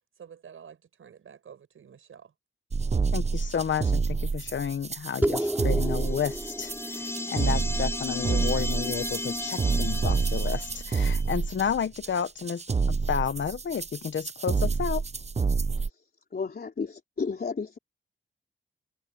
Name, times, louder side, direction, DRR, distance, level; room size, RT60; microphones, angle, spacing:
voice 1, 0.2-2.3, right 7 dB, 80° right, 6.7 m, -49 dB
sound 1, 2.7-15.9, right 4 dB, 30° right, 0.8 m, -28 dB
voice 2, 3.1-15.0, left 7 dB, 65° left, 1.2 m, -31 dB
sound 2, 5.2-10.0, right 1 dB, 10° right, 5.1 m, -34 dB
sound 3, 5.9-11.3, left 2 dB, 10° left, 0.5 m, -35 dB
voice 3, 16.3-17.8, left 5 dB, 45° left, 3.7 m, -32 dB
wide cardioid pair, 95°, 21 cm